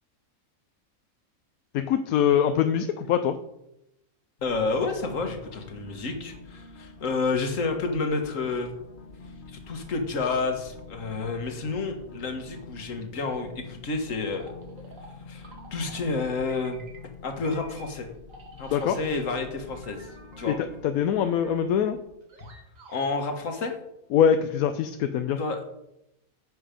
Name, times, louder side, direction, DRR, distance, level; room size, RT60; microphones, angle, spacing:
voice 1, 1.7-3.4 18.7-19.0 20.5-22.0 24.1-25.4, left 8 dB, 80° left, 9 dB, 1.1 m, -23 dB
voice 2, 4.4-8.7 9.5-14.5 15.3-16.8 17.2-18.1 18.6-20.1 20.4-20.6 22.9-23.7 25.4-25.6, left 3 dB, 65° left, 5 dB, 1.7 m, -30 dB
sound 1, 4.4-22.2, left 4 dB, 40° left, 0.9 m, -47 dB
sound 2, 14.1-16.2 16.5-17.2 17.4-19.3 19.7-23.1, right 2 dB, 65° right, 1.9 m, -50 dB
9.4 x 7.3 x 5.1 m, 0.85 s
omnidirectional pair, 1.5 m